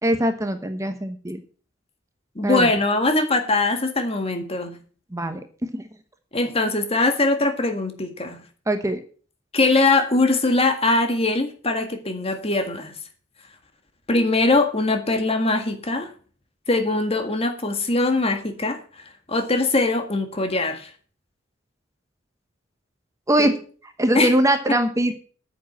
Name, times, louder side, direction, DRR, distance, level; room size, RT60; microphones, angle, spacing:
voice 1, 0.0-1.4 2.4-2.7 5.1-5.4 8.7-9.0 23.3-23.5 24.0-25.1, right 1 dB, 15° right, 1.1 m, -21 dB
voice 2, 2.4-4.8 6.3-8.4 9.5-12.9 14.1-16.1 16.7-20.9 23.4-23.5 24.1-24.3 24.7-24.8, left 2 dB, 30° left, 1.8 m, -22 dB
9.5 x 7.6 x 7.2 m
head